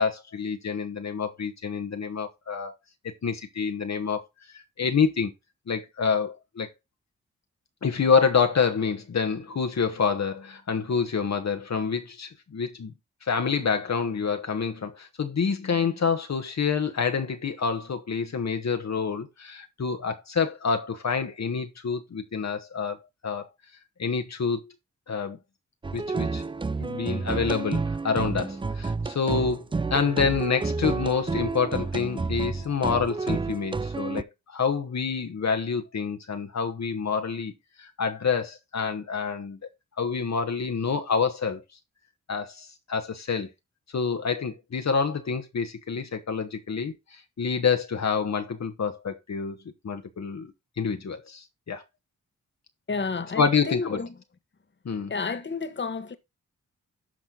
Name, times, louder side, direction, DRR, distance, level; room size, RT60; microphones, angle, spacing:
voice 1, 0.0-2.7 3.2-4.2 4.5-5.3 5.7-6.7 7.8-12.9 13.2-23.0 23.2-23.5 24.0-24.6 25.1-25.4 25.9-26.4 26.8-29.6 29.9-37.5 37.8-39.6 40.0-41.6 42.3-43.5 43.9-49.6 49.8-50.5 50.8-51.8 53.4-54.0 54.8-55.1, left 5 dB, 55° left, 1.3 m, -27 dB
sound 1, 25.8-34.2, right 4 dB, 15° right, 0.4 m, -30 dB
voice 2, 52.9-54.1 55.1-56.2, left 4 dB, 35° left, 1.3 m, -30 dB
12.5 x 4.3 x 3.9 m
supercardioid pair, 45°, 32 cm